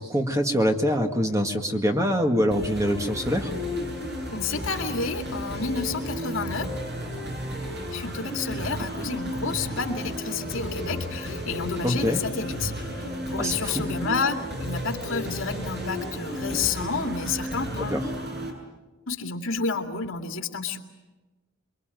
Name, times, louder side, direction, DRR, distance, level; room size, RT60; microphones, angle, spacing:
voice 1, 0.0-3.5 11.8-12.2 13.4-13.8 17.9-18.0, equal, 15° right, 4 dB, 1.9 m, -24 dB
sound 1, 2.5-18.5, equal, 50° right, 7.7 m, -33 dB
voice 2, 4.3-6.7 7.9-18.0 19.1-20.8, left 4 dB, 75° left, 5 dB, 2.5 m, -30 dB
28.0 x 23.0 x 9.3 m, 1.2 s
head